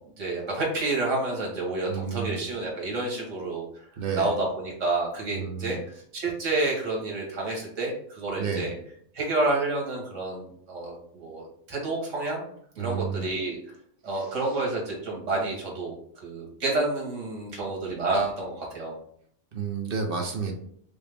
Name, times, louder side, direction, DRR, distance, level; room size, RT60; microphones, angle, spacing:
voice 1, 0.2-3.8 4.1-5.8 6.1-8.7 9.1-12.4 12.7-13.6 14.0-19.0, right 2 dB, 75° right, -1 dB, 1.6 m, -29 dB
voice 2, 1.9-2.4 4.0-4.3 5.3-5.8 8.4-8.7 12.8-13.3 14.1-14.3 19.5-20.5, right 5 dB, 55° right, 2 dB, 0.8 m, -31 dB
5.0 x 2.0 x 3.3 m, 0.64 s
omnidirectional pair, 1.3 m